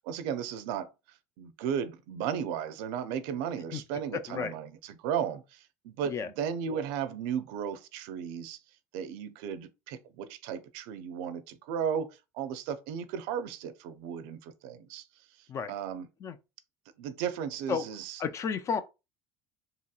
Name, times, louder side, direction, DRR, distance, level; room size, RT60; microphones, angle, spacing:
voice 1, 0.0-0.9 1.4-8.6 8.9-15.0 15.7-16.1 17.0-18.2, right 8 dB, 75° right, 0.5 m, -35 dB
voice 2, 4.1-4.5 6.0-6.3 15.5-15.7 16.2-16.4 17.7-17.8 18.2-18.8, left 6 dB, 40° left, 0.4 m, -32 dB
2.9 x 2.8 x 2.3 m
supercardioid pair, 110°, 8 cm